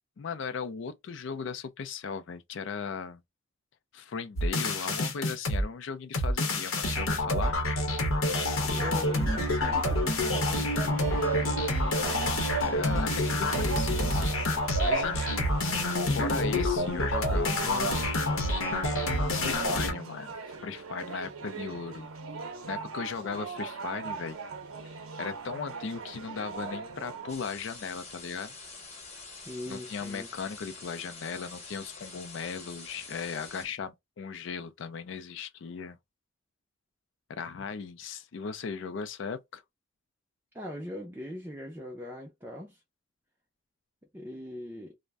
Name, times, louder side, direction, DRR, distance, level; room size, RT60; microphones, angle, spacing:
voice 1, 0.2-3.2 3.9-7.6 12.6-14.4 14.8-15.9 16.1-18.1 19.3-20.4 20.6-22.1 22.7-24.4 24.8-28.6 29.7-36.0 37.3-39.6, left 5 dB, 60° left, 0.4 m, -37 dB
sound 1, 4.4-5.6 6.1-19.9, left 1 dB, 80° left, 0.8 m, -28 dB
voice 2, 8.6-11.2 23.2-23.3 29.3-30.3 40.5-42.8 44.1-45.0, left 1 dB, 10° right, 0.4 m, -41 dB
sound 2, 8.8-27.4, right 4 dB, 85° right, 0.6 m, -38 dB
sound 3, 27.3-33.7, left 3 dB, 30° left, 0.9 m, -46 dB
2.5 x 2.1 x 3.3 m
head